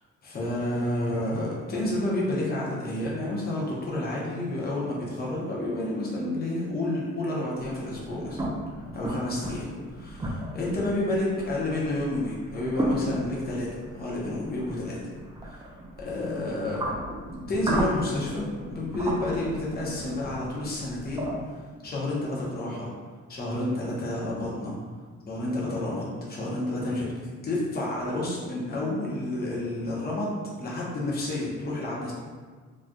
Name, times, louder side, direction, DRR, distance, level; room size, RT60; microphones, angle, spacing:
voice 1, 0.2-8.4 8.9-15.0 16.0-16.9 17.5-22.9 23.3-24.7 25.2-27.1 27.4-32.1, left 1 dB, 30° left, -5 dB, 0.8 m, -30 dB
sound 1, 7.6-21.4, right 1 dB, 15° right, 0.4 m, -35 dB
3.1 x 2.5 x 2.2 m, 1.5 s
cardioid pair, 90°, 30 cm